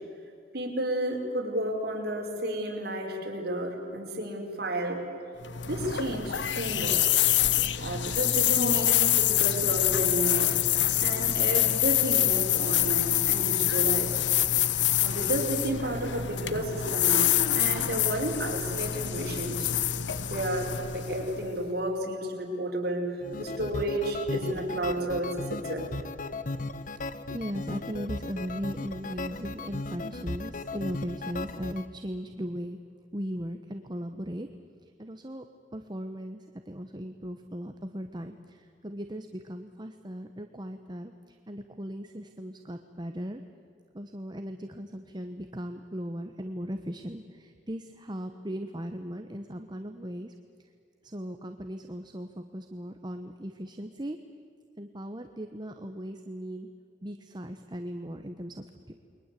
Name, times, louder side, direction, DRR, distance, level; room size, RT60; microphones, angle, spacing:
voice 1, 0.5-5.1 5.6-7.2 7.8-10.6 11.0-14.2 15.0-19.7 20.3-25.9, right 1 dB, 60° right, 1 dB, 5.0 m, -32 dB
sound 1, 5.4-21.6, left 12 dB, 85° left, 0.9 m, -26 dB
sound 2, 23.2-31.9, left 2 dB, 45° left, 0.9 m, -36 dB
voice 2, 27.1-32.8 33.1-34.5 34.8-35.4 35.7-43.4 43.9-50.3 50.6-50.7 51.0-54.2 54.8-56.7 57.0-58.9, equal, 25° right, 7 dB, 1.1 m, -38 dB
29.5 x 22.5 x 8.4 m, 2.5 s
head